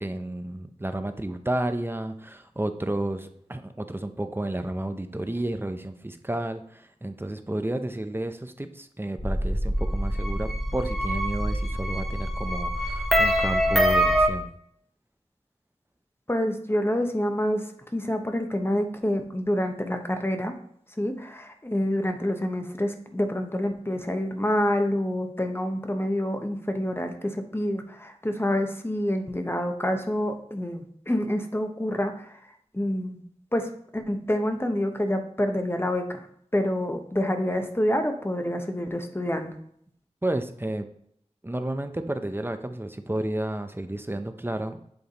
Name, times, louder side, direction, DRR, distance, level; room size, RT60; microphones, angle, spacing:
voice 1, 0.0-14.5 40.2-40.9 41.4-44.8, right 1 dB, 20° right, 8 dB, 0.5 m, -31 dB
sound 1, 9.2-14.3, equal, ahead, 1.2 m, -24 dB
voice 2, 16.3-20.5 21.0-32.4 32.7-33.2 33.5-36.2 36.5-39.6, left 1 dB, 20° left, 5 dB, 0.9 m, -27 dB
8.0 x 3.3 x 4.1 m, 0.68 s
wide cardioid pair, 55°, 12 cm